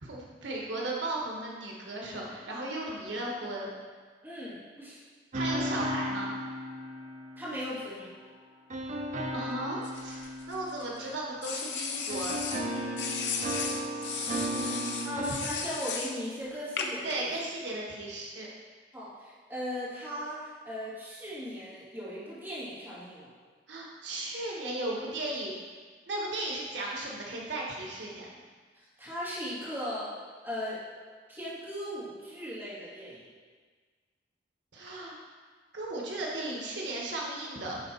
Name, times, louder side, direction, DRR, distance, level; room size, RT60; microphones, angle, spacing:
voice 1, 0.0-3.7 5.3-6.3 9.3-12.3 12.6-13.4 13.9-15.4 17.0-18.5 23.7-25.5 26.1-28.3 34.7-35.2 35.7-37.8, right 1 dB, 85° right, -3 dB, 1.2 m, -36 dB
voice 2, 4.2-5.0 7.4-8.1 11.0-11.1 15.0-17.4 18.9-23.3 28.7-30.1 30.4-30.8 31.3-33.2, equal, 10° right, -10 dB, 2.3 m, -38 dB
sound 1, 5.3-8.0 8.7-11.7 12.1-15.3, right 1 dB, 40° right, 0.6 m, -35 dB
sound 2, 9.8-10.8 11.4-12.6 13.0-16.2 16.8-17.1, left 6 dB, 75° left, 0.7 m, -35 dB
10.5 x 3.7 x 4.1 m, 1.5 s
head